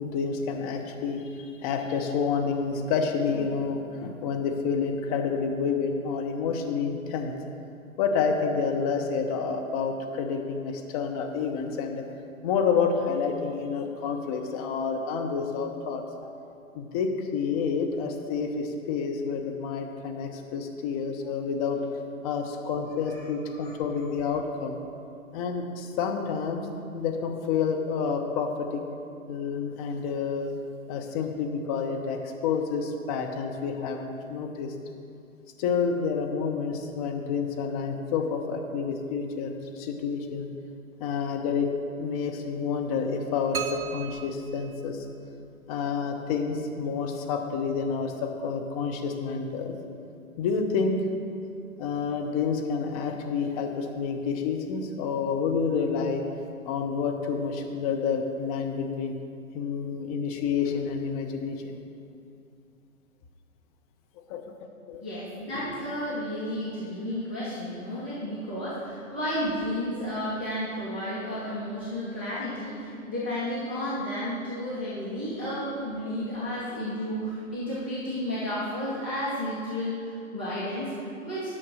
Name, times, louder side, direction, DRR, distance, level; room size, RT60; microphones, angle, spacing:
voice 1, 0.0-7.3 8.0-12.0 12.4-16.0 16.7-21.8 22.2-24.8 25.3-26.7 26.9-28.8 29.3-30.5 30.9-34.7 35.6-40.5 41.0-41.7 42.0-45.1 45.7-49.7 50.4-51.1 51.8-56.2 56.6-59.1 59.5-61.8 64.3-64.4 64.9-65.0, left 5 dB, 25° left, 3 dB, 0.8 m, -29 dB
voice 2, 23.1-23.7 65.0-81.5, equal, 10° right, -11 dB, 0.3 m, -32 dB
sound 1, 43.5-45.5, right 5 dB, 75° right, 1.0 m, -36 dB
9.5 x 5.9 x 6.4 m, 2.5 s
figure-of-eight pair, 125°, 43 cm